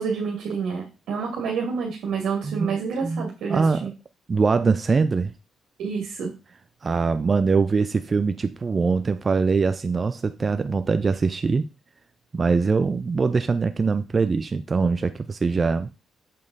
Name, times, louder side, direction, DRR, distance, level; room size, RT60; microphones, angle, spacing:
voice 1, 0.0-3.9 5.8-6.3, right 5 dB, 80° right, 2.1 m, -28 dB
voice 2, 2.4-3.9 4.3-5.3 6.8-11.6 12.3-15.9, right 4 dB, 25° right, 0.3 m, -23 dB
7.2 x 5.3 x 4.0 m
cardioid pair, 150°, 0 cm